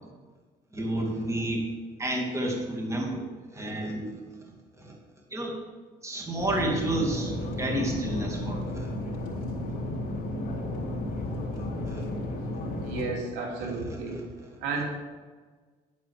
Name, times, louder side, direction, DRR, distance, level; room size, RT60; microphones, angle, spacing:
voice 1, 0.7-1.7 2.0-3.2 3.5-4.1 4.8-5.0 5.3-5.5 6.0-8.9 11.5-12.1 13.6-14.2, right 1 dB, 15° right, -1 dB, 2.7 m, -31 dB
sound 1, 6.4-13.1, left 1 dB, 55° left, 3.8 m, -33 dB
voice 2, 12.8-14.2 14.6-14.8, right 3 dB, 90° right, -1 dB, 3.4 m, -32 dB
10.5 x 9.7 x 5.0 m, 1.4 s
cardioid pair, 110°, 17 cm